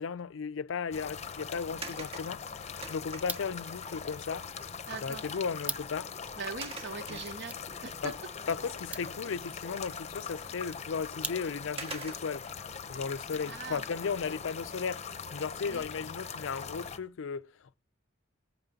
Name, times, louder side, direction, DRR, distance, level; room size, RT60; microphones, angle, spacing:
voice 1, 0.0-4.7 5.0-6.1 7.1-7.2 8.0-8.2 8.5-12.5 12.9-17.8, left 5 dB, 65° left, 0.4 m, -36 dB
sound 1, 0.9-17.0, left 6 dB, 35° left, 0.7 m, -42 dB
sound 2, 1.8-3.6 4.8-4.9 5.3-5.6 6.6-7.8 8.3-8.4 10.8-10.9 11.8-12.5 14.8-15.2 15.6-15.7, right 4 dB, 30° right, 1.7 m, -45 dB
sound 3, 3.1-11.9, right 2 dB, 5° right, 0.5 m, -46 dB
voice 2, 4.9-5.3 6.4-8.2 13.5-13.8 15.7-15.8, right 5 dB, 60° right, 0.9 m, -41 dB
18.0 x 8.9 x 2.8 m
head